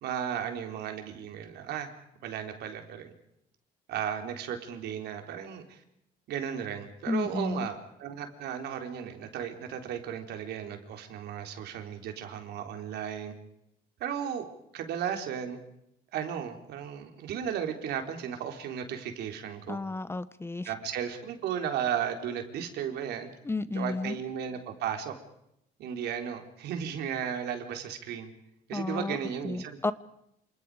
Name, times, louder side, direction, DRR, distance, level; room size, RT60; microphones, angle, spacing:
voice 1, 0.0-1.9 2.2-3.1 3.9-5.8 6.3-13.3 14.0-14.5 14.7-15.6 16.1-19.8 20.6-23.3 23.7-25.1 25.8-28.3 28.7-29.8, right 8 dB, 75° right, 5 dB, 3.8 m, -35 dB
voice 2, 7.1-7.7 19.7-20.7 23.4-24.2 28.7-29.2 29.4-29.9, left 3 dB, 15° left, 15 dB, 0.9 m, -32 dB
28.0 x 27.0 x 5.0 m, 0.78 s
cardioid pair, 110°, 17 cm